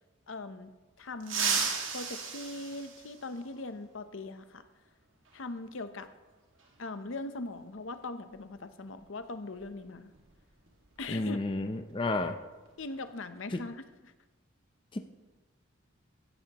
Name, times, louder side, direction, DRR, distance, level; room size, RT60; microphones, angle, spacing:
voice 1, 0.3-0.7 1.0-4.7 5.3-6.1 6.8-10.1 11.0-11.4 12.8-14.1, left 2 dB, 65° left, 10 dB, 0.8 m, -40 dB
sound 1, 1.2-3.6 5.3-5.4 6.6-6.7 8.3-8.5 8.8-9.1 9.5-11.7 12.0-12.2 12.7-13.1, right 5 dB, 65° right, 2.0 m, -35 dB
voice 2, 11.1-12.4 14.9-15.0, left 2 dB, 25° left, 7 dB, 0.5 m, -31 dB
16.0 x 13.0 x 3.0 m, 1.2 s
head